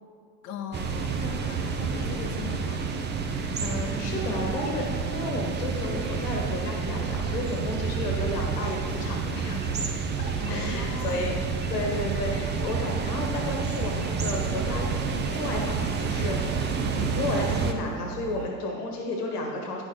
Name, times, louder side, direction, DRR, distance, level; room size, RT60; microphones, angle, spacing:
voice 1, 0.4-2.9 10.4-11.4 18.4-18.5, left 6 dB, 35° left, 2 dB, 0.7 m, -39 dB
sound 1, 0.7-17.7, right 5 dB, 25° right, 0.7 m, -29 dB
voice 2, 3.2-9.7 10.5-15.0 15.3-19.8, left 2 dB, 75° left, 1 dB, 1.4 m, -32 dB
sound 2, 7.0-18.5, right 8 dB, 60° right, 0.6 m, -40 dB
9.7 x 6.1 x 3.8 m, 2.4 s
hypercardioid pair, 90°, 46 cm